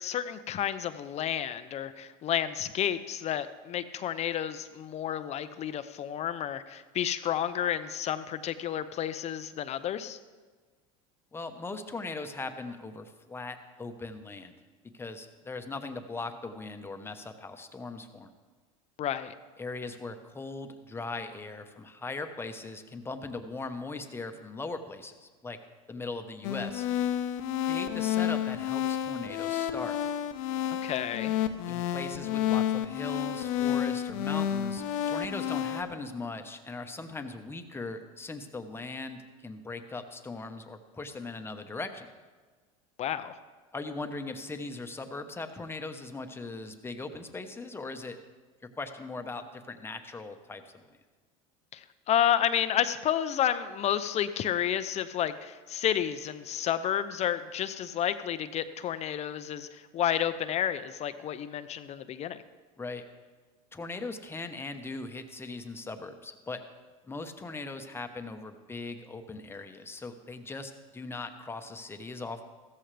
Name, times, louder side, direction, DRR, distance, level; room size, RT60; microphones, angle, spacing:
voice 1, 0.0-10.2 19.0-19.3 30.8-31.3 43.0-43.3 51.7-62.4, left 10 dB, 40° left, 12 dB, 0.7 m, -31 dB
voice 2, 11.3-14.5 14.9-18.3 19.6-25.6 25.9-26.9 27.6-30.0 31.7-42.1 43.7-48.2 48.8-50.7 62.8-63.0 63.7-66.6 67.1-72.4, left 3 dB, 15° left, 6 dB, 1.1 m, -39 dB
sound 1, 26.4-35.8, left 10 dB, 80° left, 1.0 m, -30 dB
15.0 x 13.5 x 3.4 m, 1.4 s
supercardioid pair, 110°, 17 cm